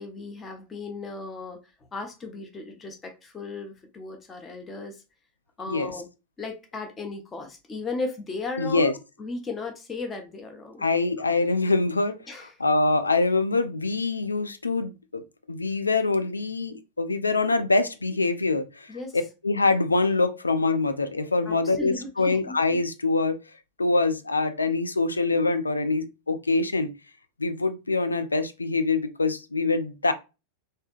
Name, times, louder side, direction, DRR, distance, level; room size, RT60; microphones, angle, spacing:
voice 1, 0.0-1.6 1.9-5.0 5.6-6.1 6.4-8.9 9.2-10.8 11.2-11.3 12.3-12.5 18.9-19.2 21.5-22.6, left 3 dB, 20° left, 0.8 m, -36 dB
voice 2, 8.6-8.9 10.8-12.2 12.6-23.4 23.8-26.9 27.4-30.1, left 3 dB, 80° left, 0.3 m, -24 dB
3.3 x 2.7 x 2.3 m
figure-of-eight pair, 90°, 0 cm